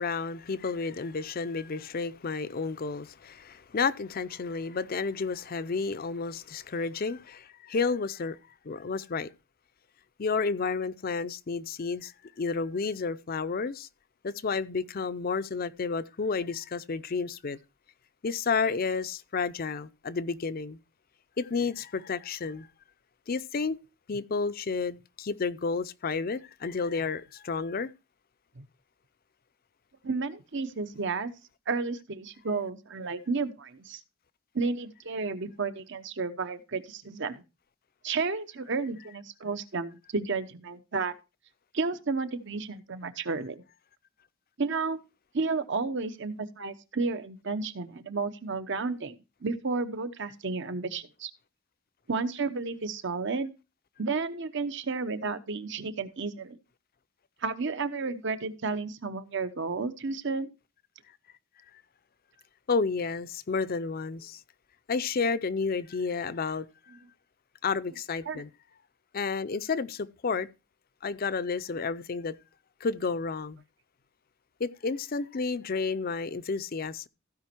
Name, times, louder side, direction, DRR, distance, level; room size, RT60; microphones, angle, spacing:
voice 1, 0.0-8.4 8.6-9.3 10.2-12.1 12.4-13.9 14.2-17.6 18.2-20.8 21.4-22.7 23.3-23.8 24.1-27.9 62.7-64.4 64.9-66.7 67.6-68.5 69.1-70.5 71.0-72.3 72.8-73.6 74.6-77.1, left 4 dB, 45° left, 0.5 m, -31 dB
voice 2, 30.0-31.3 31.7-34.0 34.5-37.4 38.0-41.1 41.7-43.6 44.6-45.0 45.3-49.2 49.4-51.3 52.1-53.5 54.0-56.6 57.4-60.5 68.3-68.4, right 4 dB, 60° right, 0.9 m, -32 dB
15.5 x 5.2 x 4.5 m
head